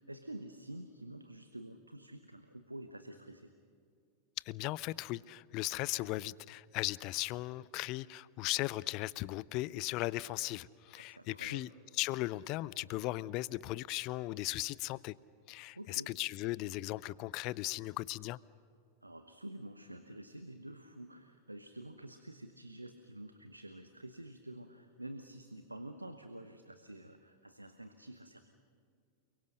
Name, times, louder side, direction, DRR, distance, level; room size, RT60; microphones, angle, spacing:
voice 1, 0.0-3.5 11.0-11.7 15.7-16.1 19.0-28.4, right 1 dB, 85° right, 1.1 m, -48 dB
voice 2, 4.5-11.7 12.0-15.1 15.5-18.4, left 19 dB, 40° left, 0.5 m, -37 dB
29.0 x 23.0 x 6.5 m
figure-of-eight pair, 90°, 0 cm